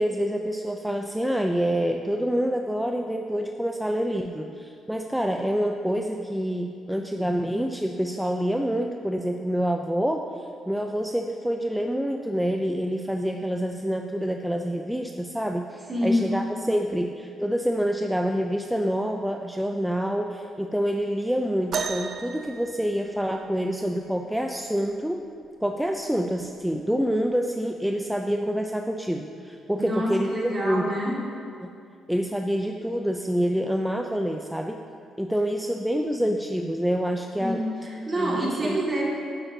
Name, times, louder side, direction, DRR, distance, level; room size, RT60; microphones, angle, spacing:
voice 1, 0.0-25.3 25.6-30.9 31.6-31.7 32.1-34.8 35.2-37.6 38.2-38.8, equal, 5° right, 3 dB, 0.3 m, -27 dB
voice 2, 15.9-16.3 29.8-31.1 37.4-39.0, equal, 35° right, -4 dB, 1.9 m, -27 dB
sound 1, 21.7-23.6 25.3-25.4 26.2-26.4 27.3-27.4, right 5 dB, 60° right, 0.5 m, -33 dB
8.9 x 7.8 x 2.7 m, 2.4 s
cardioid pair, 90°, 0 cm